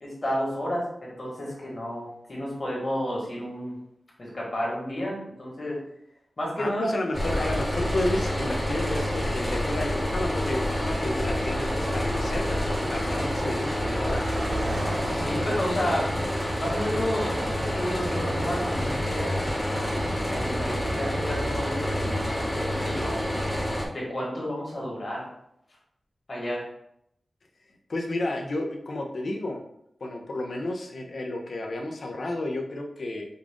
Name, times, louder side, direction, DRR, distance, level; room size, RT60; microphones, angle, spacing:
voice 1, 0.0-3.8 4.2-5.8 6.4-6.9 15.1-16.2 16.6-23.3 23.9-25.3 26.3-26.6, equal, 40° left, -5 dB, 1.8 m, -31 dB
voice 2, 6.6-14.2 27.9-29.6 30.0-33.2, left 2 dB, 60° left, 2 dB, 0.7 m, -31 dB
sound 1, 7.1-23.9, equal, 5° left, 1.0 m, -28 dB
Car passing by, 10.4-10.7 10.9-21.4, right 1 dB, 40° right, 0.7 m, -40 dB
5.4 x 2.5 x 3.7 m, 0.74 s
wide cardioid pair, 125°, 0 cm